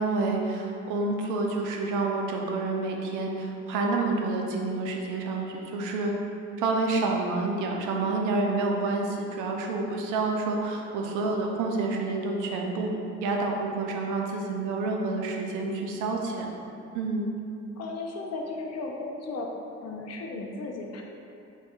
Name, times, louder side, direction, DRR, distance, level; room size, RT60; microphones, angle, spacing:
voice 1, 0.0-6.1 6.6-12.9 13.2-17.3, right 3 dB, 90° right, 1 dB, 0.5 m, -28 dB
voice 2, 17.8-19.5 19.8-21.0, left 3 dB, 55° left, 0 dB, 0.5 m, -35 dB
4.2 x 2.3 x 2.3 m, 2.7 s
cardioid pair, 90°, 30 cm